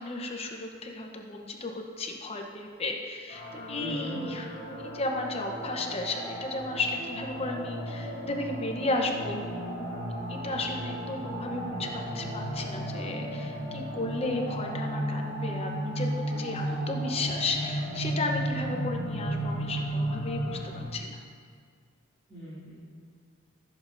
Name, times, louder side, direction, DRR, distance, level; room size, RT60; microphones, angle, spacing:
voice 1, 0.0-4.5 4.8-16.1 16.4-21.2, left 2 dB, 30° left, 2 dB, 0.8 m, -34 dB
sound 1, 3.3-20.8, right 1 dB, 50° left, 2.2 m, -35 dB
sound 2, 3.6-18.8, right 1 dB, 5° right, 1.4 m, -42 dB
voice 2, 3.8-4.2 16.3-16.8 22.3-22.8, equal, 25° right, -11 dB, 2.7 m, -40 dB
16.0 x 7.5 x 2.6 m, 2.1 s
head